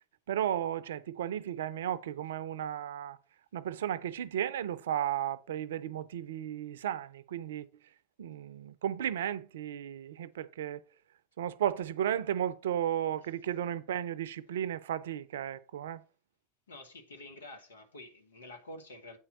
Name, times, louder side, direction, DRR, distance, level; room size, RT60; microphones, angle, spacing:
voice 1, 0.3-3.2 3.5-7.7 8.2-10.8 11.4-16.0, right 10 dB, 75° right, 0.5 m, -34 dB
voice 2, 16.7-19.2, left 1 dB, 85° left, 1.6 m, -48 dB
8.5 x 4.4 x 5.3 m
hypercardioid pair, 80°, 0 cm